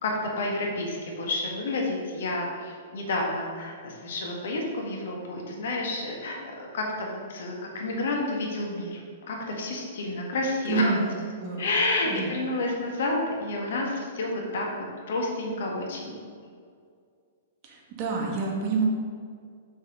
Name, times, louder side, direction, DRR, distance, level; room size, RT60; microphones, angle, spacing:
voice 1, 0.0-11.0 11.6-14.7 15.1-16.2, left 2 dB, 65° left, 0 dB, 1.6 m, -30 dB
voice 2, 10.7-11.7 12.2-12.3 17.6-18.8, right 4 dB, 40° right, -2 dB, 1.8 m, -28 dB
7.1 x 6.1 x 3.8 m, 2.2 s
figure-of-eight pair, 110°, 0 cm